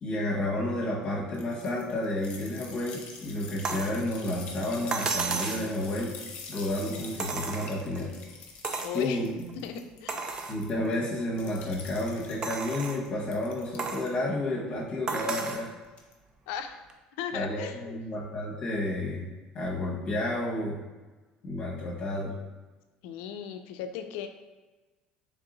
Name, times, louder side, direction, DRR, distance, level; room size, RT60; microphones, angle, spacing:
voice 1, 0.0-6.1 6.5-8.1 8.9-9.5 10.5-15.7 17.3-19.3 19.5-20.8 21.4-22.3, left 1 dB, 35° left, -3 dB, 1.1 m, -31 dB
sound 1, 1.3-10.0 10.3-11.0 11.3-12.4 12.9-14.1 15.2-15.7 16.0-16.1, left 5 dB, 55° left, 0.7 m, -45 dB
sound 2, 3.6-4.0 4.9-5.7 7.2-8.0 8.6-9.0 9.5-9.6 10.1-10.6 11.2-11.3 12.4-13.0 13.8-14.1 15.1-15.7 16.9-17.0, right 4 dB, 30° right, 0.4 m, -32 dB
voice 2, 8.8-9.2 9.6-10.2 16.5-16.8 17.2-18.0 23.0-24.3, left 8 dB, 85° left, 7 dB, 0.3 m, -36 dB
3.3 x 2.7 x 3.9 m, 1.2 s
cardioid pair, 135°, 3 cm